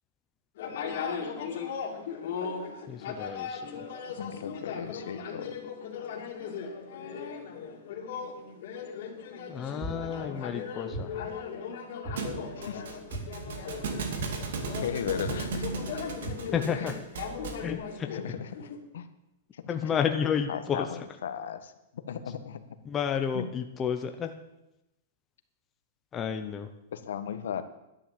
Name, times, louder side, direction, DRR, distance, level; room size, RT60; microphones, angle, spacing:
sound 1, 0.6-18.8, left 6 dB, 45° left, 2.5 m, -38 dB
voice 1, 2.9-3.8 9.5-11.1 16.5-16.9 17.6-18.1 19.7-20.9 22.8-24.3 26.1-26.7, left 7 dB, 15° left, 5 dB, 0.7 m, -31 dB
voice 2, 4.1-5.5 12.6-13.0 13.5-13.7 14.8-15.8 16.8-16.9 18.1-19.1 19.6-19.9 20.5-21.7 22.1-22.6 23.3-23.5 26.9-27.6, left 8 dB, 70° left, 10 dB, 1.4 m, -36 dB
sound 2, 9.8-10.2 10.9-11.4 12.0-12.5 13.1-13.5 14.2-14.6 15.2-15.5 16.2-16.6, right 1 dB, 30° right, 5.4 m, -38 dB
Thump thud, 12.2-17.7, right 5 dB, 65° right, 2.3 m, -37 dB
11.5 x 10.0 x 7.7 m, 0.92 s
supercardioid pair, 180°, 0 cm